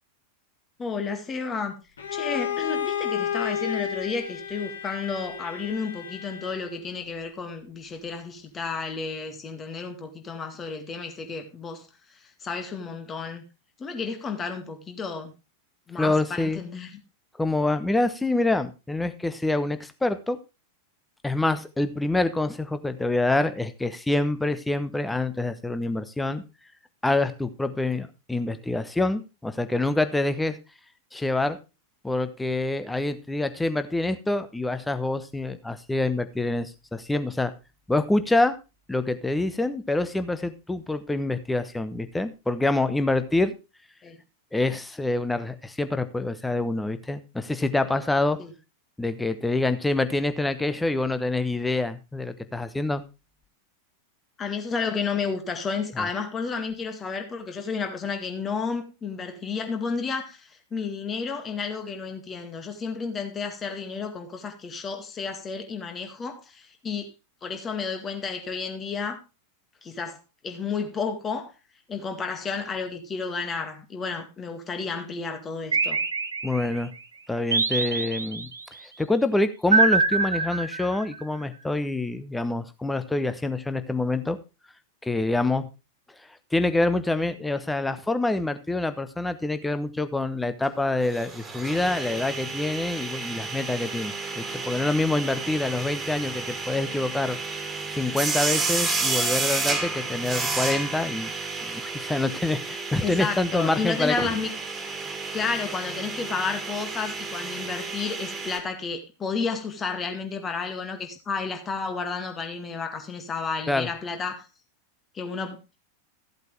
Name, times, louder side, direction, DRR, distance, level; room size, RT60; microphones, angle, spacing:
voice 1, 0.8-1.8 2.1-11.8 12.4-13.4 13.8-15.3 15.9-17.0 44.0-44.2 48.4-48.5 54.4-67.1 67.4-69.2 69.8-70.2 70.4-71.5 71.9-76.0 103.0-104.5 105.3-114.5 115.1-115.8, left 5 dB, 20° left, 2.0 m, -31 dB
Bowed string instrument, 2.0-6.8, left 9 dB, 65° left, 1.7 m, -31 dB
voice 2, 16.0-16.6 17.4-20.4 21.2-26.4 27.0-30.6 31.1-31.6 32.0-37.5 37.9-38.6 38.9-43.5 44.5-48.4 49.0-53.0 56.0-56.1 76.4-76.9 77.3-78.5 79.0-84.4 85.0-85.7 86.5-97.4 98.0-101.3 101.6-104.1 113.7-113.9, left 2 dB, 5° left, 1.0 m, -26 dB
sound 1, 75.7-76.8 77.5-78.6 79.7-81.2, right 4 dB, 75° right, 0.9 m, -24 dB
sound 2, 90.6-90.7 91.0-108.6, right 3 dB, 20° right, 2.6 m, -31 dB
14.5 x 8.1 x 3.3 m
figure-of-eight pair, 90°, 0 cm